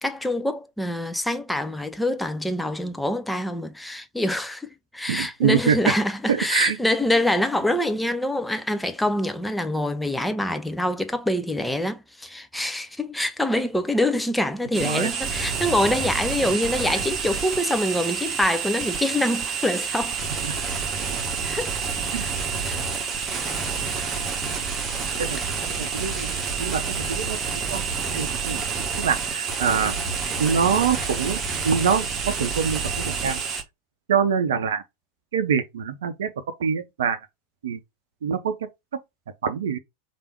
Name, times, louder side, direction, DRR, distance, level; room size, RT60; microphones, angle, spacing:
voice 1, 0.0-20.2 21.4-21.7 22.2-22.3 22.6-22.8 25.4-25.5, left 1 dB, 5° left, 0.5 m, -25 dB
voice 2, 5.1-5.8 6.3-6.8 14.8-15.1 20.4-20.5 22.1-22.2 25.2-25.4 25.8-26.3 26.6-27.4 27.7-27.8 28.1-28.6 29.0-29.9 30.4-31.4 31.6-33.4 34.1-34.8 35.3-36.3 36.6-37.2 37.6-37.8 38.2-38.6 39.4-39.8, right 7 dB, 60° right, 0.6 m, -24 dB
sound 1, 14.7-33.6, right 5 dB, 25° right, 1.1 m, -28 dB
3.4 x 2.5 x 4.4 m
figure-of-eight pair, 90°, 0 cm